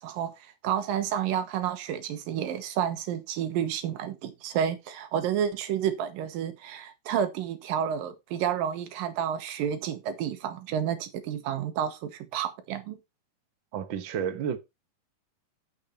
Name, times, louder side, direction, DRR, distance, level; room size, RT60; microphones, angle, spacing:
voice 1, 0.0-13.0, right 9 dB, 90° right, 2.8 m, -30 dB
voice 2, 13.7-14.6, right 8 dB, 65° right, 1.2 m, -31 dB
8.9 x 6.5 x 4.2 m
omnidirectional pair, 3.9 m